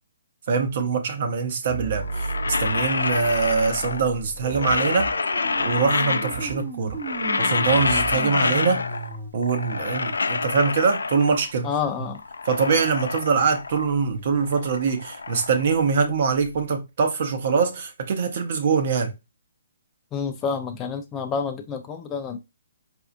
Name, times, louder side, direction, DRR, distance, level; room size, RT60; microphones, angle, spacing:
voice 1, 0.5-5.1 5.6-7.0 7.4-8.8 9.3-11.7 12.5-19.1, right 5 dB, 55° right, 0.8 m, -23 dB
sound 1, 1.7-9.3, right 3 dB, 20° right, 0.7 m, -35 dB
sound 2, 2.0-4.1 4.4-6.6 6.9-9.2 9.4-11.5 12.0-14.0 14.3-16.5, left 4 dB, 90° left, 0.3 m, -27 dB
voice 2, 11.6-12.2 20.1-22.4, left 6 dB, 20° left, 0.4 m, -28 dB
4.4 x 2.3 x 2.5 m
hypercardioid pair, 145°, 0 cm